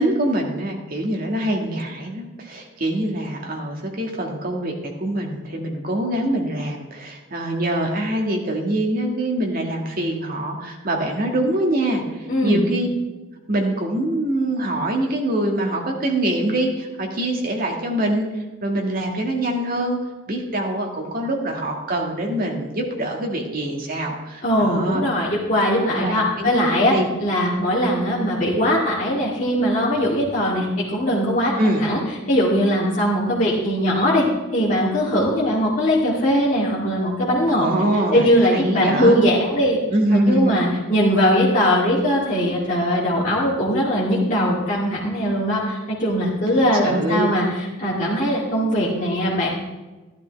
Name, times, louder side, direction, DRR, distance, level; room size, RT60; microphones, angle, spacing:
voice 1, 0.0-12.9 13.5-20.0 20.3-25.0 25.8-26.5 26.8-27.1 31.6-31.8 37.5-39.2 39.9-40.7 46.5-47.3, right 1 dB, 45° right, 1 dB, 1.8 m, -24 dB
voice 2, 12.3-12.6 24.4-26.9 27.2-32.0 32.3-34.2 34.5-37.7 38.1-39.8 40.1-49.5, equal, 35° left, -7 dB, 2.2 m, -20 dB
13.0 x 11.5 x 3.4 m, 1.2 s
head